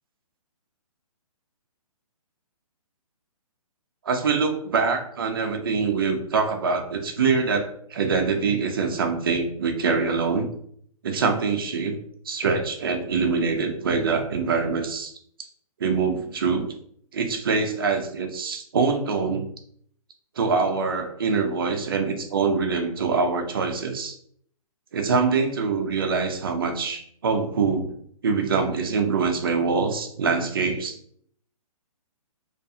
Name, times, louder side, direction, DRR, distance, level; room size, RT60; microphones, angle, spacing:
voice 1, 4.1-10.5 11.0-12.0 12.3-15.1 15.8-16.7 17.1-19.4 20.4-24.1 24.9-27.9 28.2-30.9, right 5 dB, 40° right, 5 dB, 0.4 m, -24 dB
2.4 x 2.3 x 2.6 m, 0.64 s
hypercardioid pair, 170°, 19 cm